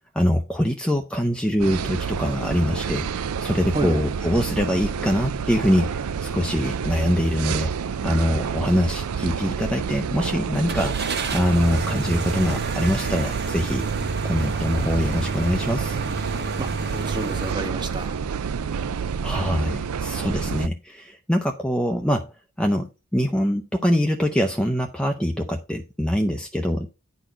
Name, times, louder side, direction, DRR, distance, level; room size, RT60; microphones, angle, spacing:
voice 1, 0.1-7.7 8.0-13.8 14.2-16.0 19.2-22.3 22.6-26.9, equal, 5° left, 3 dB, 0.5 m, -24 dB
sound 1, 1.6-20.7, right 6 dB, 70° right, 0.4 m, -29 dB
voice 2, 3.7-4.1 16.6-18.2, right 2 dB, 20° right, 6 dB, 1.2 m, -30 dB
sound 2, 10.7-17.5, right 3 dB, 50° right, 1.4 m, -30 dB
10.0 x 4.2 x 5.0 m, 0.30 s
head